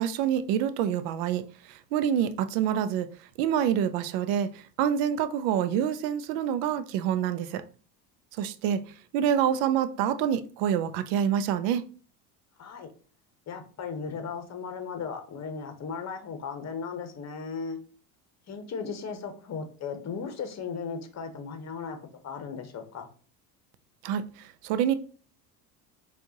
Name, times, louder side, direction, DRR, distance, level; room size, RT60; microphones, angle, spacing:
voice 1, 0.0-1.4 1.7-3.1 3.4-7.6 8.4-8.8 9.1-11.8 24.0-24.9, right 9 dB, 75° right, 0.6 m, -27 dB
voice 2, 12.6-12.9 13.5-17.8 18.5-22.0 22.2-23.1, left 5 dB, 35° left, 0.9 m, -36 dB
4.4 x 2.5 x 2.8 m
hypercardioid pair, 80°, 49 cm